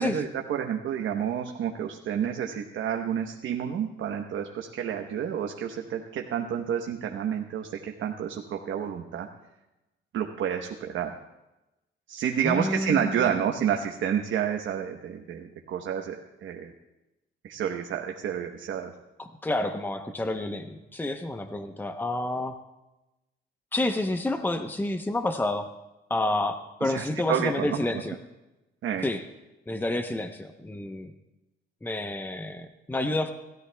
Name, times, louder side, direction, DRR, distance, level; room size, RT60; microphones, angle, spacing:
voice 1, 0.0-9.3 10.1-11.1 12.1-16.7 17.4-18.9 26.8-28.0 28.8-29.1, right 8 dB, 75° right, 3 dB, 1.1 m, -30 dB
voice 2, 12.4-13.2 19.2-22.5 23.7-25.7 26.1-28.2 29.0-29.2 29.7-31.1 31.8-33.3, left 1 dB, 10° left, 7 dB, 0.8 m, -29 dB
28.0 x 13.5 x 2.3 m, 0.99 s
cardioid pair, 90°, 20 cm